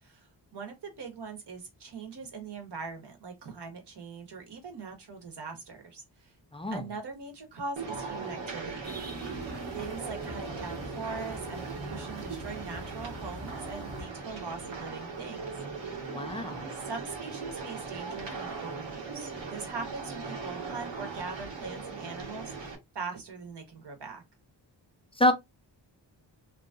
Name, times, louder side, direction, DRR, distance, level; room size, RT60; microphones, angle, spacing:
voice 1, 0.0-6.3 6.7-9.0 9.7-15.5 16.7-24.2, right 4 dB, 60° right, 1.1 m, -41 dB
sound 1, 7.8-22.8, right 4 dB, 85° right, 1.2 m, -39 dB
sound 2, 8.8-14.0, equal, 35° right, 1.0 m, -43 dB
voice 2, 16.1-16.7 25.2-25.3, left 1 dB, 15° left, 0.3 m, -26 dB
2.9 x 2.6 x 2.3 m
wide cardioid pair, 105°, 45 cm